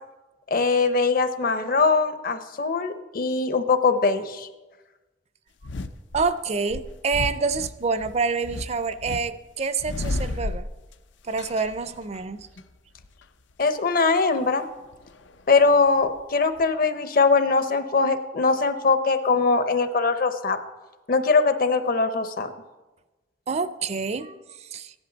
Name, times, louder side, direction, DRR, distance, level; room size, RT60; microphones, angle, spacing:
voice 1, 0.5-4.5 13.6-14.6 15.5-20.6 21.1-22.5, left 4 dB, 55° left, 10 dB, 0.8 m, -21 dB
sound 1, 5.6-6.3 6.7-9.2 9.5-11.0 11.3-12.6 13.0-13.2 14.9-16.2 16.6-16.7, left 2 dB, 90° left, 0.6 m, -33 dB
voice 2, 6.1-10.7 11.3-12.5 23.5-24.3 24.7-24.9, right 4 dB, 35° right, 13 dB, 0.5 m, -27 dB
15.5 x 11.0 x 3.9 m, 1.1 s
head